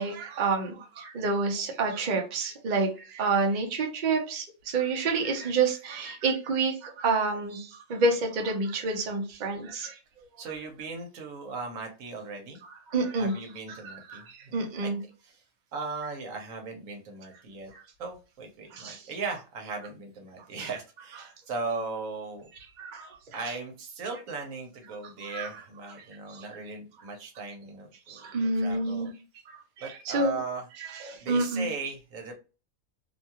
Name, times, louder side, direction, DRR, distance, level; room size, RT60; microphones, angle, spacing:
voice 1, 0.0-10.0 12.6-13.3 13.8-15.0 17.7-17.8 18.7-19.1 20.6-20.7 22.8-23.4 25.0-25.5 26.3-26.5 28.1-29.1 29.5-30.4 30.8-31.7, right 3 dB, 50° right, 0.6 m, -29 dB
voice 2, 10.4-12.6 13.2-14.9 15.2-15.4 15.7-17.7 18.0-22.5 23.3-28.3 28.6-29.1 29.8-30.7 31.2-32.3, right 4 dB, 70° right, 1.1 m, -38 dB
2.7 x 2.3 x 2.8 m
omnidirectional pair, 1.5 m